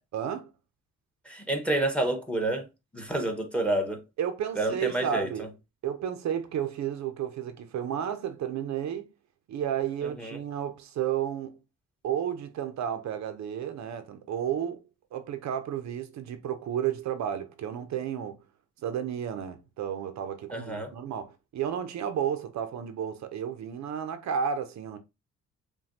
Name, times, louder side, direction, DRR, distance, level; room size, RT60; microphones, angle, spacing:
voice 1, 0.1-0.5 4.2-5.5 5.8-9.1 9.5-11.6 12.0-14.8 15.1-18.4 18.8-25.0, right 9 dB, 65° right, 0.6 m, -32 dB
voice 2, 1.2-2.7 2.9-4.0 4.6-5.5 10.0-10.4 20.5-20.9, right 1 dB, 5° left, 1.1 m, -29 dB
5.7 x 2.3 x 2.6 m
cardioid pair, 90°, 30 cm